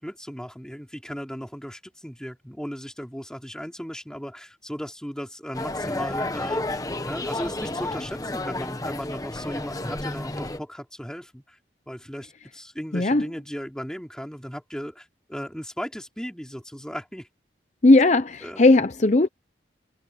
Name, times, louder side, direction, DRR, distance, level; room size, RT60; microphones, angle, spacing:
voice 1, 0.0-6.8 7.1-11.6 11.9-17.3 18.4-18.6, equal, 5° left, 3.3 m, -36 dB
sound 1, 5.5-10.6, left 2 dB, 20° left, 1.0 m, -31 dB
voice 2, 12.9-13.3 17.8-19.3, left 2 dB, 40° left, 0.7 m, -17 dB
head